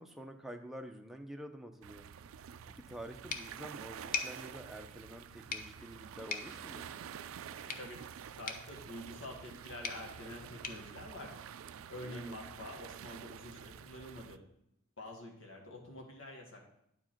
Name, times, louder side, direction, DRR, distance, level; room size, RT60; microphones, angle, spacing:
voice 1, 0.0-2.1 2.7-6.9 11.9-12.4, equal, ahead, 3 dB, 0.6 m, -48 dB
sound 1, 1.8-14.4, right 8 dB, 90° right, 0.3 m, -49 dB
sound 2, 3.3-12.0, left 6 dB, 45° left, 0.6 m, -45 dB
voice 2, 7.6-8.0 8.4-11.4 11.9-14.4 15.0-16.6, left 1 dB, 75° left, 1 dB, 1.8 m, -47 dB
9.5 x 4.8 x 4.4 m, 0.77 s
head